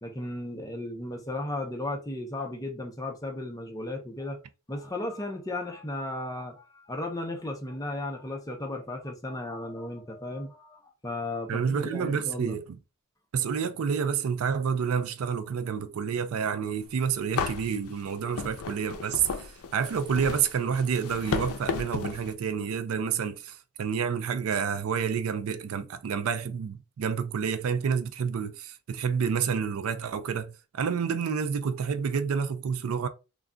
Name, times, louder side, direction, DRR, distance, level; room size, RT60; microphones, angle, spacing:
voice 1, 0.0-4.4 4.7-12.6, left 1 dB, 15° left, 0.6 m, -35 dB
voice 2, 11.5-12.8 13.3-33.1, right 6 dB, 65° right, 0.4 m, -29 dB
sound 1, 16.8-16.9 17.4-22.3, left 5 dB, 75° left, 0.5 m, -34 dB
2.3 x 2.2 x 3.6 m
head